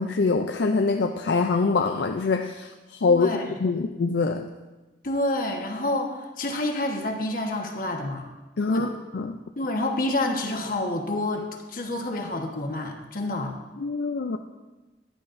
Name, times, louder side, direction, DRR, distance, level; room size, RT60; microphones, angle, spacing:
voice 1, 0.0-4.5 8.6-9.4 13.8-14.4, left 4 dB, 70° left, 5 dB, 0.5 m, -24 dB
voice 2, 3.1-3.4 5.0-8.2 8.7-8.9 9.6-13.5, left 1 dB, 50° left, 2 dB, 1.3 m, -28 dB
14.5 x 10.5 x 2.6 m, 1.2 s
head